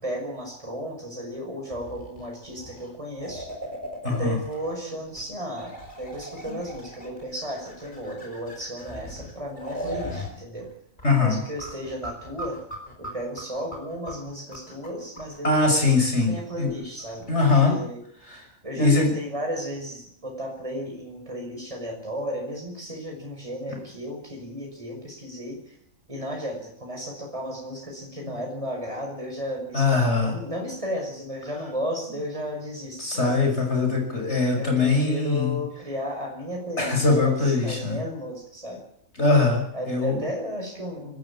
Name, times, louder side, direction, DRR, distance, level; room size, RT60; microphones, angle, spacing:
voice 1, 0.0-3.5 4.1-10.7 11.2-12.6 13.0-18.0 18.6-25.7 26.1-33.7 34.6-38.8 39.7-41.2, equal, 25° right, 0 dB, 5.7 m, -34 dB
sound 1, 1.7-4.8 5.1-5.2 5.6-10.3 10.6-10.7 11.0-17.5, equal, 35° left, 5.2 m, -39 dB
voice 2, 4.0-4.4 6.5-6.6 11.0-11.4 15.4-16.7 17.3-17.8 18.3-18.4 18.8-19.1 29.7-30.4 33.0-35.6 36.8-38.0 39.2-40.2, left 3 dB, 55° left, 2 dB, 6.4 m, -22 dB
24.5 x 13.5 x 8.7 m, 0.70 s
omnidirectional pair, 1.4 m